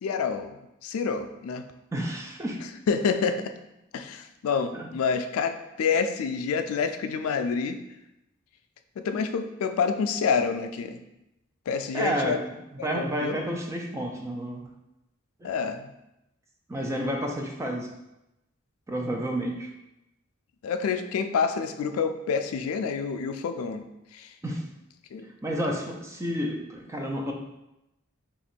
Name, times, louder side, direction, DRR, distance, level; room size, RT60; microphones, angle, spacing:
voice 1, 0.0-0.6 0.8-1.6 2.9-3.5 3.9-7.8 9.0-11.0 11.7-12.4 12.8-13.4 15.4-15.9 20.6-23.8 24.1-24.3 25.1-25.3, left 5 dB, 80° left, 8 dB, 0.3 m, -28 dB
voice 2, 1.9-2.6 4.7-4.9 11.9-12.4 12.7-14.6 15.4-15.5 16.7-17.9 18.9-19.7 24.4-24.6 25.4-27.3, equal, 15° right, 1 dB, 0.4 m, -30 dB
2.9 x 2.6 x 4.2 m, 0.91 s
head